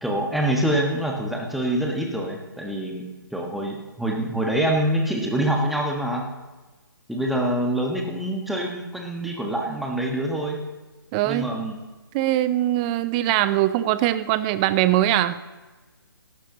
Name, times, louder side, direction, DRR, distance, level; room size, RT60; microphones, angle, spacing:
voice 1, 0.0-3.0 3.3-6.3 7.1-10.6 11.2-11.8, right 1 dB, ahead, 0 dB, 1.4 m, -25 dB
voice 2, 11.1-11.5 12.1-15.4, right 14 dB, 20° right, 14 dB, 0.5 m, -21 dB
17.5 x 12.5 x 2.9 m, 1.2 s
figure-of-eight pair, 145°, 12 cm